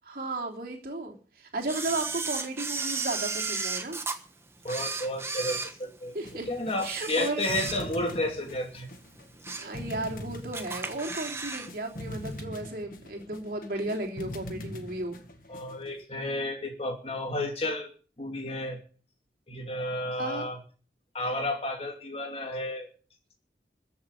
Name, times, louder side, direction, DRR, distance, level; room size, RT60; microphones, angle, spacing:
voice 1, 0.0-4.0 6.1-6.5 6.8-7.4 9.6-15.2 20.2-20.5, right 2 dB, 55° right, 1 dB, 3.3 m, -34 dB
Camera, 1.7-4.2 4.6-6.3 6.7-8.1 8.5-8.6 9.2-9.8 10.1-10.2 10.5-11.7 11.9-12.0, right 4 dB, 15° right, 1.3 m, -34 dB
voice 2, 4.6-6.2 6.5-8.9 15.5-17.9 18.2-18.8 19.5-20.6 21.1-22.9, left 1 dB, 35° left, 3 dB, 2.8 m, -32 dB
sound 1, 6.2-16.0, left 1 dB, 50° left, 1.7 m, -42 dB
14.5 x 7.3 x 9.2 m, 0.40 s
head